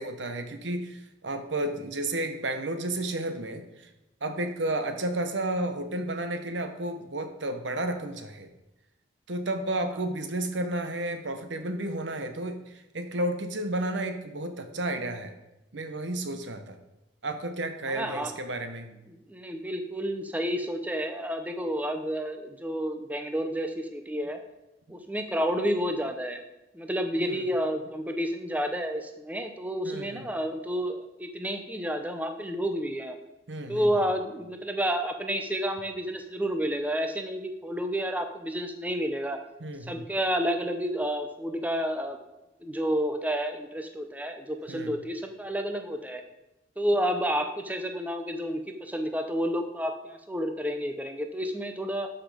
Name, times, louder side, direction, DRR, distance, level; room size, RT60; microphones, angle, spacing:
voice 1, 0.0-3.9 4.2-8.5 9.3-15.3 15.7-16.8 17.2-18.9 27.2-27.4 29.8-30.2 33.5-33.9 39.6-40.0 44.7-45.0, right 1 dB, 85° right, 7 dB, 1.1 m, -32 dB
voice 2, 17.9-18.3 19.1-24.4 24.9-26.4 26.7-33.2 33.7-39.4 39.8-42.2 42.6-46.2 46.8-52.1, equal, 10° right, 6 dB, 0.7 m, -30 dB
12.0 x 5.8 x 5.1 m, 0.96 s
head